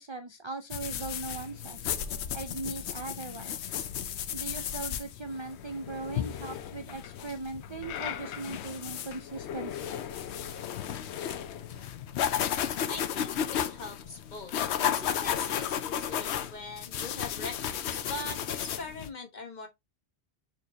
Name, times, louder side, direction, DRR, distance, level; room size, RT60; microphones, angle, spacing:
voice 1, 0.0-1.9 2.3-3.7 4.3-10.0, right 3 dB, 40° right, 0.4 m, -39 dB
sound 1, 0.7-19.1, left 9 dB, 75° left, 0.9 m, -34 dB
voice 2, 12.9-19.7, left 3 dB, 45° left, 1.1 m, -42 dB
6.5 x 3.1 x 2.6 m
omnidirectional pair, 1.1 m